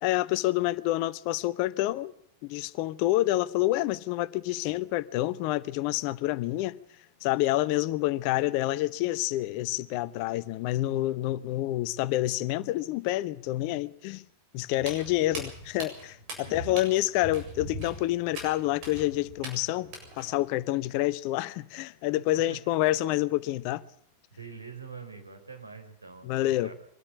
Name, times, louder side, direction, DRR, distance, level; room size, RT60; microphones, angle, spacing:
voice 1, 0.0-2.1 2.4-6.8 7.2-14.3 14.5-23.8 26.2-26.7, left 16 dB, 45° left, 0.8 m, -28 dB
Walk footsteps, 14.8-20.4, right 1 dB, 45° right, 7.5 m, -41 dB
voice 2, 16.4-16.8 22.3-22.9 24.3-26.7, right 5 dB, 80° right, 4.1 m, -45 dB
24.0 x 13.0 x 8.3 m
figure-of-eight pair, 90°, 0 cm